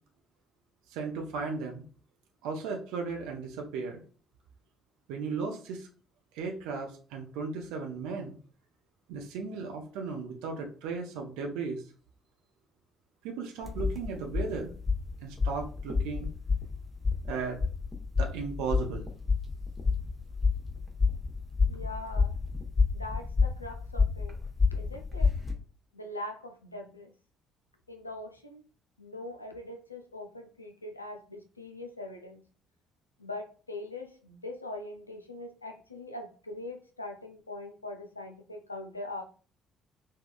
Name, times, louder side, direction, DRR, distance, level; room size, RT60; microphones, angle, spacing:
voice 1, 0.9-1.8 2.4-4.0 5.1-5.9 6.3-8.4 9.1-11.8 13.2-14.7 15.2-16.3 17.3-17.6 18.2-19.1, right 4 dB, 65° right, 2 dB, 0.6 m, -35 dB
sound 1, 13.6-25.5, left 4 dB, 15° left, 1.0 m, -29 dB
voice 2, 21.6-22.4 22.9-24.4 24.7-25.3 25.9-27.1 27.9-28.6 29.0-32.4 33.2-39.2, left 2 dB, 85° left, 5 dB, 0.3 m, -42 dB
3.5 x 2.2 x 2.3 m, 0.39 s
figure-of-eight pair, 45°, 0 cm